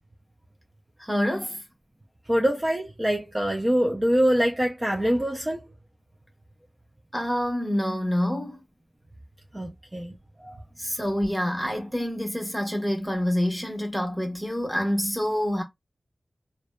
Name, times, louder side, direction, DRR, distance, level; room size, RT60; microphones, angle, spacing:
voice 1, 1.0-1.6 7.1-8.6 10.8-15.6, equal, ahead, 1.0 m, -27 dB
voice 2, 2.3-5.6 9.5-10.1 10.4-10.6, equal, 25° right, 0.5 m, -24 dB
2.6 x 2.1 x 2.2 m
wide cardioid pair, 65°, 0 cm